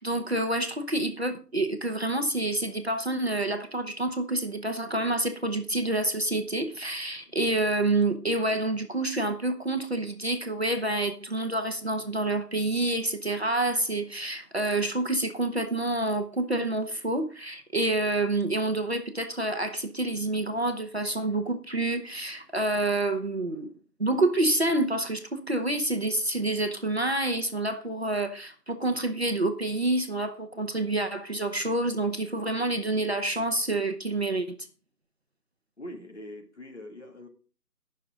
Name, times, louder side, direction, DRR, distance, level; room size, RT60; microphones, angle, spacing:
voice 1, 0.0-23.7 24.0-34.6, right 2 dB, 40° right, 1.1 m, -28 dB
voice 2, 35.8-37.3, left 1 dB, 45° left, 2.4 m, -43 dB
18.5 x 6.7 x 3.8 m
figure-of-eight pair, 180°, 49 cm